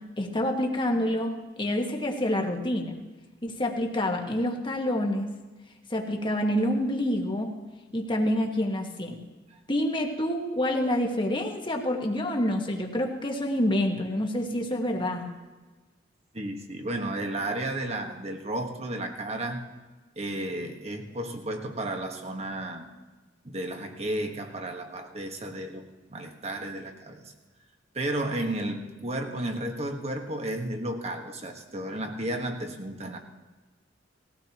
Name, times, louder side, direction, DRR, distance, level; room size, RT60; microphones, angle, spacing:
voice 1, 0.2-2.9 3.4-5.3 5.9-7.5 7.9-9.2 9.7-15.3, left 1 dB, 25° left, 2 dB, 1.5 m, -27 dB
voice 2, 16.3-19.6 20.2-22.9 23.4-27.3 27.9-33.2, right 1 dB, 35° right, 4 dB, 1.5 m, -33 dB
19.5 x 16.0 x 3.0 m, 1.2 s
head